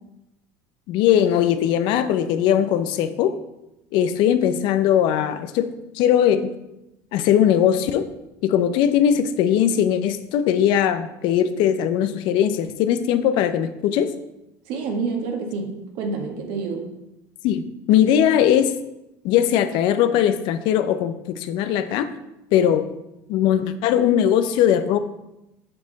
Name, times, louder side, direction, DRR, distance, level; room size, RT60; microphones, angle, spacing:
voice 1, 0.9-3.3 3.9-5.7 5.9-6.5 7.1-8.1 8.4-14.1 17.4-18.7 19.2-22.1 22.5-22.8 23.3-25.0, left 10 dB, 65° left, 10 dB, 0.7 m, -20 dB
voice 2, 14.7-16.9, right 4 dB, 70° right, 2 dB, 1.7 m, -28 dB
7.8 x 6.2 x 4.1 m, 0.90 s
supercardioid pair, 90°, 9 cm